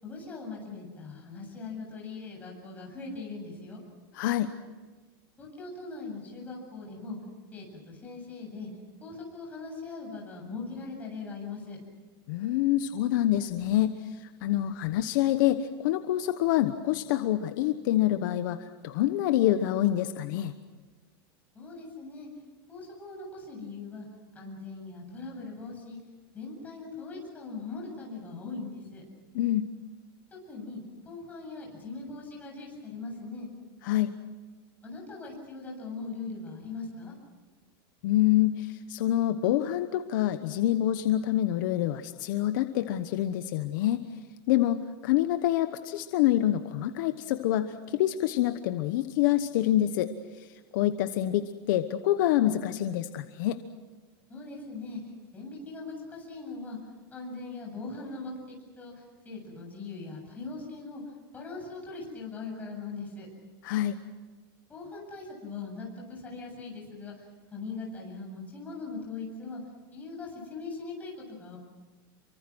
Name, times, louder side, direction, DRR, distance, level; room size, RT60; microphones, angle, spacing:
voice 1, 0.0-3.8 5.4-7.2 7.5-8.7 9.0-11.8 21.5-22.3 22.7-24.1 24.3-26.0 26.3-29.0 30.5-33.5 34.8-37.1 50.7-50.9 54.3-56.8 57.1-61.0 61.3-63.3 64.7-67.2 67.5-69.6 69.9-71.6, left 3 dB, 15° left, -1 dB, 7.8 m, -40 dB
voice 2, 4.1-4.5 12.3-20.5 29.3-29.7 33.8-34.1 38.0-44.0 44.5-50.1 50.4-50.5 50.7-53.6 63.6-63.9, left 13 dB, 55° left, 9 dB, 1.1 m, -26 dB
28.5 x 24.5 x 6.3 m, 1.3 s
supercardioid pair, 165°, 12 cm